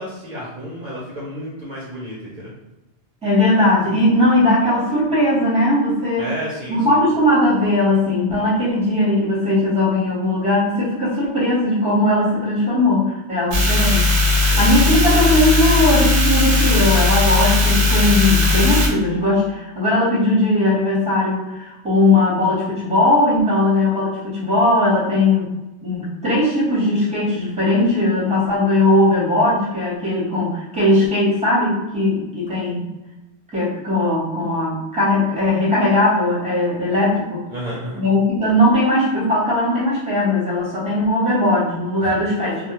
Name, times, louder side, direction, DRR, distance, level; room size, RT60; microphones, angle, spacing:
voice 1, 0.0-2.5 6.2-7.0 14.4-14.8 37.5-38.0 42.0-42.1 42.4-42.7, equal, 55° right, -7 dB, 0.6 m, -32 dB
voice 2, 3.2-6.3 6.7-25.5 25.8-32.8 33.5-37.4 37.9-42.5, left 1 dB, 5° right, -7 dB, 0.8 m, -18 dB
sound 1, 13.5-18.9, left 3 dB, 80° right, 0.9 m, -17 dB
2.2 x 2.2 x 2.8 m, 1.0 s
omnidirectional pair, 1.1 m